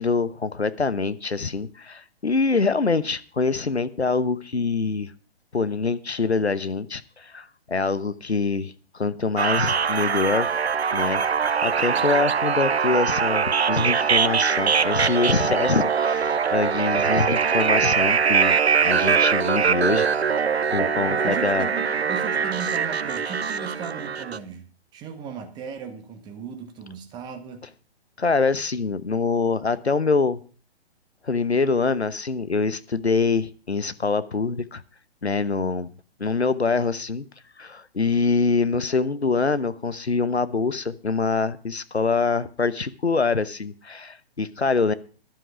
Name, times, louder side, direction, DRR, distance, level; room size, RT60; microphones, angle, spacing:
voice 1, 0.0-5.1 5.5-10.5 10.9-11.2 11.6-18.6 18.8-20.1 20.5-21.7 28.2-30.4 31.2-34.8 35.2-35.9 36.2-37.2 37.6-44.9, left 4 dB, 80° left, 1.0 m, -24 dB
sound 1, 9.4-24.4, right 6 dB, 75° right, 0.7 m, -22 dB
voice 2, 21.0-24.6 24.9-27.7, right 7 dB, 15° right, 1.2 m, -36 dB
11.5 x 11.0 x 4.8 m
figure-of-eight pair, 125°, 32 cm